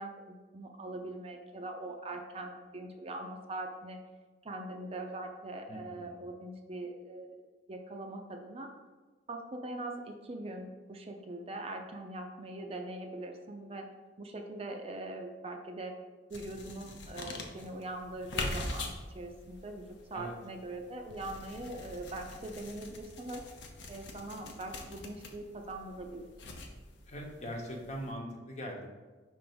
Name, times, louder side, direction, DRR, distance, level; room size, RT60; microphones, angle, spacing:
voice 1, 0.0-4.0 4.4-7.4 7.7-8.7 9.3-13.9 14.2-16.0 16.3-19.8 20.1-23.4 23.9-26.3, right 2 dB, 35° right, 4 dB, 0.5 m, -42 dB
voice 2, 5.7-6.2 20.1-20.3 27.1-28.9, equal, 40° left, 1 dB, 1.0 m, -41 dB
sound 1, 16.3-28.1, left 2 dB, 85° left, 0.8 m, -44 dB
5.8 x 3.5 x 5.2 m, 1.3 s
head